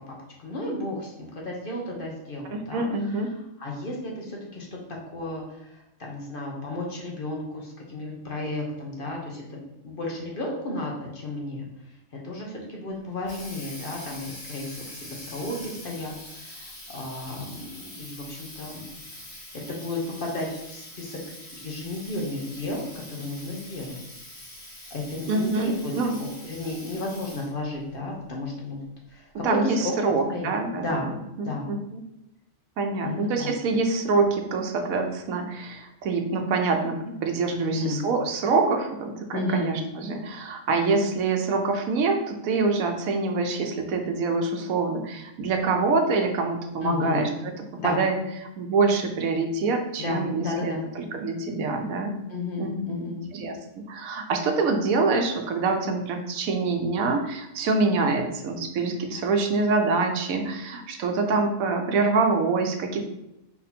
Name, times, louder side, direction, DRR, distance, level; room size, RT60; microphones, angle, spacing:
voice 1, 0.1-3.2 3.6-11.7 12.2-19.4 19.7-21.2 21.5-24.0 24.9-25.9 26.2-28.8 29.1-30.5 30.7-31.1 31.4-31.7 33.0-33.5 37.6-38.1 39.3-39.8 46.8-47.3 47.8-48.0 50.0-50.9 52.3-53.3, left 2 dB, 45° left, -1 dB, 0.9 m, -33 dB
voice 2, 2.5-3.3 25.3-26.2 29.4-31.1 31.4-32.0 32.8-47.5 47.8-48.1 48.6-52.1 52.6-53.6 53.9-63.0, right 3 dB, 90° right, 4 dB, 1.1 m, -25 dB
Water tap faucet, 12.9-27.6, left 1 dB, 80° left, 2.0 m, -44 dB
4.4 x 2.7 x 4.1 m, 0.88 s
omnidirectional pair, 1.4 m